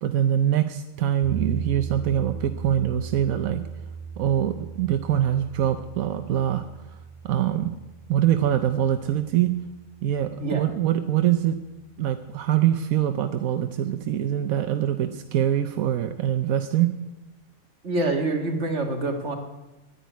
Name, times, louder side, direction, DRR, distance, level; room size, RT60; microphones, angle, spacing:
voice 1, 0.0-3.6 4.2-6.6 7.2-7.7 8.1-9.5 10.0-11.6 12.0-16.9, right 11 dB, 85° right, 8 dB, 1.2 m, -24 dB
sound 1, 1.2-11.3, right 6 dB, 40° right, 2.2 m, -38 dB
voice 2, 17.8-19.3, right 2 dB, 55° right, 3 dB, 2.2 m, -26 dB
11.0 x 10.5 x 9.3 m, 1.0 s
omnidirectional pair, 1.4 m